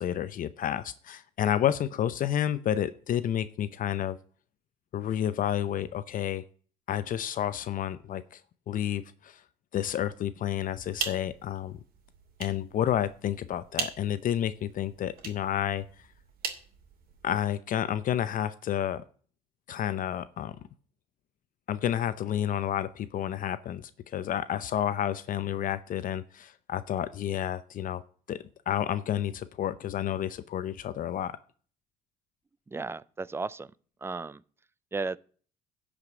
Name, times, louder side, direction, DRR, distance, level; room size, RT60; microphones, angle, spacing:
voice 1, 0.0-4.2 4.9-6.4 6.9-8.4 8.7-9.4 9.7-11.8 12.4-15.8 17.2-19.0 19.7-20.6 21.7-28.0 28.3-28.4 28.7-31.4, left 10 dB, 55° left, 0.7 m, -30 dB
sound 1, 10.7-17.5, right 6 dB, 60° right, 2.6 m, -40 dB
voice 2, 32.7-33.7 34.0-34.4 34.9-35.2, right 3 dB, 15° right, 0.4 m, -34 dB
11.0 x 5.2 x 8.4 m
cardioid pair, 110°, 17 cm